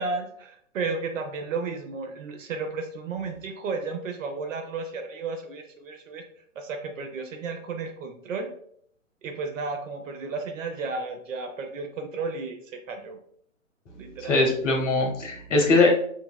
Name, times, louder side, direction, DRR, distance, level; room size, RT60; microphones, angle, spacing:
voice 1, 0.0-6.2 6.6-8.5 9.2-13.2 14.0-14.5, right 4 dB, 70° right, 5 dB, 0.6 m, -33 dB
voice 2, 13.9-15.9, left 3 dB, 60° left, 1 dB, 0.9 m, -22 dB
2.9 x 2.7 x 2.2 m, 0.65 s
figure-of-eight pair, 125°, 40 cm